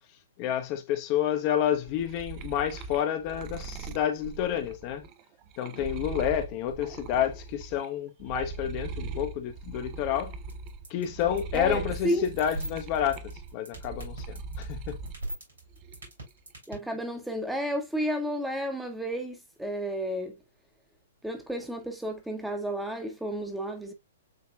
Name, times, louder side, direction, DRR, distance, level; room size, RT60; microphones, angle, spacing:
voice 1, 0.4-5.0 5.6-10.3 10.9-14.2 14.6-15.0, left 10 dB, 35° left, 0.7 m, -29 dB
sound 1, 1.6-7.9 8.2-15.2 15.6-16.3, right 4 dB, 30° right, 0.5 m, -40 dB
sound 2, 10.5-16.7, right 1 dB, 65° right, 3.5 m, -36 dB
voice 2, 11.5-12.3 16.7-20.3 21.2-23.9, equal, ahead, 0.9 m, -32 dB
7.5 x 2.9 x 2.3 m
figure-of-eight pair, 115°, 0 cm